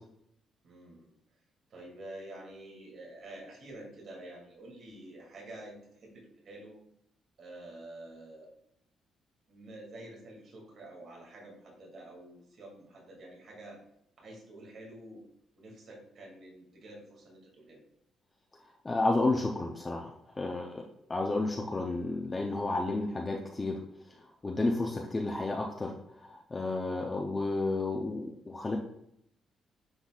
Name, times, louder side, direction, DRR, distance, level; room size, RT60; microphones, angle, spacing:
voice 1, 0.6-1.1 1.7-6.8 7.4-8.5 9.5-13.8 14.2-15.2 15.6-17.8, right 1 dB, 55° right, -2 dB, 2.3 m, -48 dB
voice 2, 18.8-20.8 21.1-28.8, left 2 dB, 25° left, -1 dB, 0.6 m, -32 dB
9.7 x 4.0 x 2.4 m, 0.76 s
cardioid pair, 90°, 0 cm